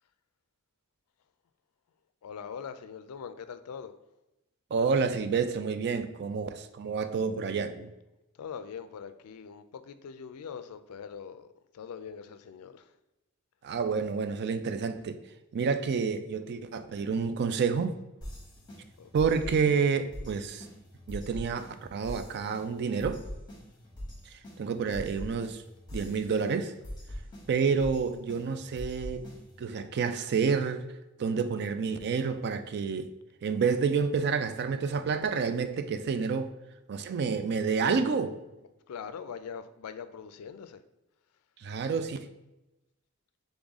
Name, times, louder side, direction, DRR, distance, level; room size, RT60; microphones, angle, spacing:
voice 1, 2.2-3.9 8.4-11.5 11.7-12.8 19.0-19.5 38.9-40.8, left 7 dB, 85° left, 0.4 m, -42 dB
voice 2, 4.7-7.9 13.6-15.2 15.5-17.9 19.1-20.6 21.1-23.2 24.6-25.6 25.9-26.7 27.5-29.3 29.6-30.8 31.2-33.1 33.4-36.5 36.9-38.4 41.6-42.2, right 5 dB, 50° right, 0.3 m, -29 dB
sound 1, 18.2-29.7, equal, 20° left, 1.2 m, -44 dB
3.9 x 3.5 x 3.6 m
head